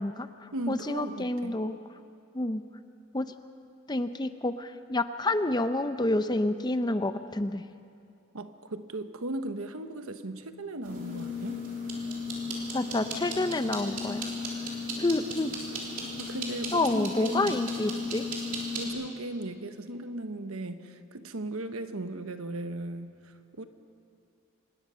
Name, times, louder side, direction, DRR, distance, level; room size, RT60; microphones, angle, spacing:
voice 1, 0.0-1.8 2.3-2.6 3.1-3.3 3.9-7.6 12.7-14.3 15.0-15.5 16.7-18.2, left 2 dB, 20° left, 10 dB, 0.6 m, -29 dB
voice 2, 0.5-1.6 8.3-11.6 16.0-17.6 18.8-23.6, right 1 dB, 80° right, 9 dB, 1.1 m, -37 dB
sound 1, 10.8-18.9, left 2 dB, 40° right, 3.6 m, -35 dB
25.5 x 20.5 x 5.6 m, 2.5 s
head